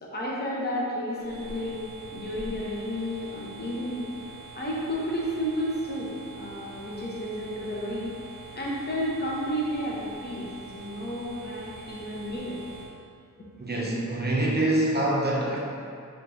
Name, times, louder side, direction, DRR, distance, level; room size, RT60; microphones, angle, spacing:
voice 1, 0.0-1.9 2.1-4.1 4.5-6.1 6.4-8.1 8.5-12.6, equal, 30° left, -5 dB, 0.9 m, -32 dB
sound 1, 1.2-12.9, right 3 dB, 15° right, 1.5 m, -44 dB
voice 2, 13.6-15.6, right 1 dB, 30° right, -4 dB, 0.6 m, -25 dB
5.2 x 3.3 x 2.7 m, 2.3 s
wide cardioid pair, 100°, 31 cm